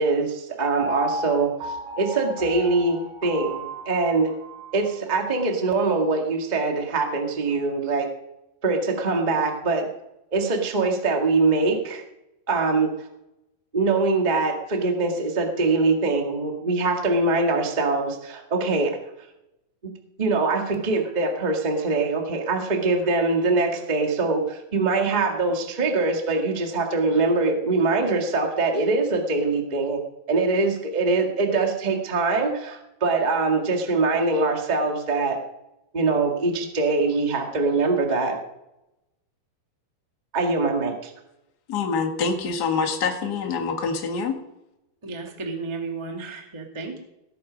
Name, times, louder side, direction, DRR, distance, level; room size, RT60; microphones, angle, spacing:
voice 1, 0.0-4.3 4.7-8.1 8.6-9.9 10.3-12.0 12.5-12.9 13.7-19.0 20.2-30.0 30.3-35.4 35.9-38.4 40.3-41.1, right 3 dB, 45° right, 2 dB, 0.5 m, -23 dB
Piano, 0.8-4.9 5.4-5.5, equal, 75° right, 6.1 m, -34 dB
voice 2, 41.7-44.4, left 5 dB, 40° left, 3 dB, 1.4 m, -25 dB
voice 3, 45.0-47.0, right 4 dB, 15° right, 1 dB, 0.8 m, -33 dB
18.5 x 8.6 x 5.2 m, 0.89 s
omnidirectional pair, 4.6 m